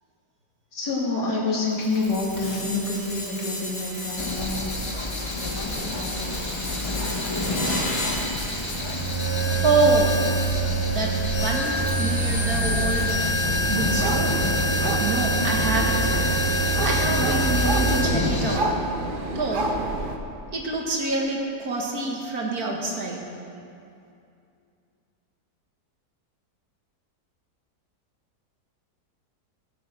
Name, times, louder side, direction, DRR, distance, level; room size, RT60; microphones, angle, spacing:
voice 1, 0.7-4.7 5.3-6.3 6.6-7.8, left 3 dB, 85° left, -3 dB, 2.8 m, -29 dB
sound 1, 1.7-18.0, right 2 dB, 60° left, 4.1 m, -27 dB
sound 2, 4.2-18.6, left 2 dB, 25° left, 0.8 m, -29 dB
voice 2, 9.5-10.2 10.8-13.1 13.7-14.4 15.0-16.2 16.8-18.7 19.4-19.7 20.5-23.2, right 3 dB, 65° right, 0 dB, 2.1 m, -26 dB
sound 3, 13.8-20.2, right 2 dB, 40° right, 0.9 m, -29 dB
17.0 x 7.6 x 6.2 m, 2.5 s
omnidirectional pair, 1.7 m